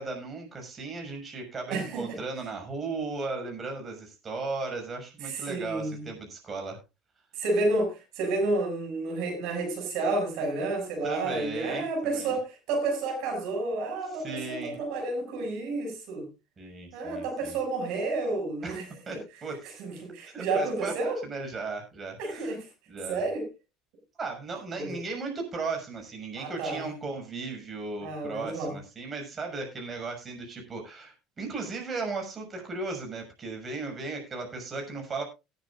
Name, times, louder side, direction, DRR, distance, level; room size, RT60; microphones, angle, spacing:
voice 1, 0.0-6.8 11.0-12.4 14.1-14.8 16.6-17.6 18.6-18.8 19.1-19.8 20.3-20.9 21.2-22.6 22.9-23.2 24.2-35.2, right 3 dB, 30° right, 6.2 m, -36 dB
voice 2, 1.7-2.2 5.2-6.1 7.3-16.3 16.9-18.8 19.1-19.2 19.8-21.2 22.2-22.6 23.1-23.4 24.8-24.9 26.4-26.9 28.0-28.7, right 2 dB, 70° right, 6.6 m, -30 dB
19.0 x 10.5 x 2.5 m
supercardioid pair, 95°, 0 cm